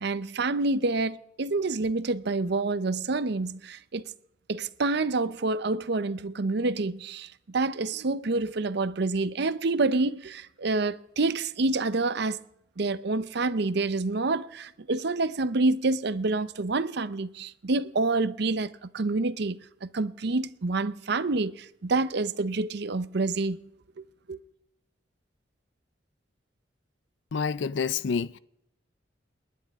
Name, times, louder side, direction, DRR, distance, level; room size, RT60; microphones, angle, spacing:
voice 1, 0.0-4.1 4.5-12.4 12.8-23.6 24.0-24.4, right 3 dB, 65° right, 0.7 m, -28 dB
voice 2, 27.3-28.4, left 5 dB, 80° left, 0.5 m, -28 dB
29.5 x 10.5 x 3.6 m
head